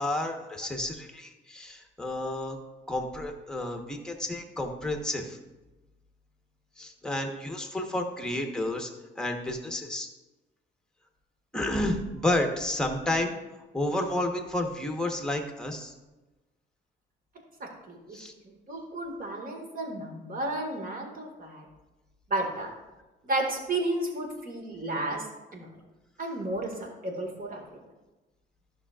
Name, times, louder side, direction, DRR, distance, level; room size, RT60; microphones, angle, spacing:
voice 1, 0.0-2.6 2.9-5.4 6.8-8.9 9.2-10.1 11.5-13.3 13.7-15.9 18.1-18.3, left 1 dB, 5° left, 3 dB, 1.2 m, -31 dB
voice 2, 17.6-18.2 18.4-21.7 22.3-22.7 23.2-25.3 25.5-25.7 26.2-27.8, right 2 dB, 45° right, 1 dB, 2.0 m, -33 dB
12.0 x 6.1 x 2.4 m, 1.1 s
cardioid pair, 90°, 20 cm